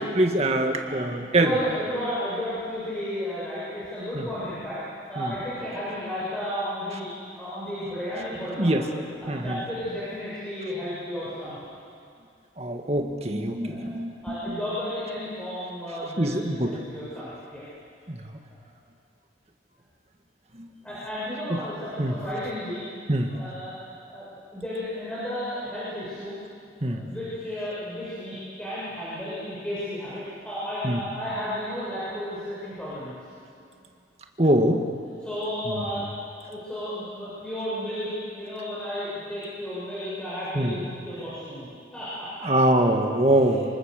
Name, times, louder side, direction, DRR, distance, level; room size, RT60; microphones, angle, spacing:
voice 1, 0.0-1.5 4.2-4.3 5.2-5.3 8.6-8.8 9.3-9.6 12.6-14.1 16.2-16.7 18.1-18.2 22.0-22.2 23.1-23.3 26.8-27.0 30.8-31.0 34.4-34.8 35.7-35.8 40.6-40.7 42.5-43.7, right 1 dB, 35° right, 3 dB, 2.1 m, -23 dB
voice 2, 0.8-4.8 5.1-7.1 7.4-8.9 9.2-11.6 13.6-14.0 14.2-17.6 18.4-18.7 20.8-22.9 23.3-23.8 24.1-26.3 26.9-33.2 35.2-36.1 36.3-42.6 43.4-43.6, equal, 5° left, -11 dB, 7.0 m, -33 dB
26.5 x 24.5 x 6.8 m, 2.3 s
head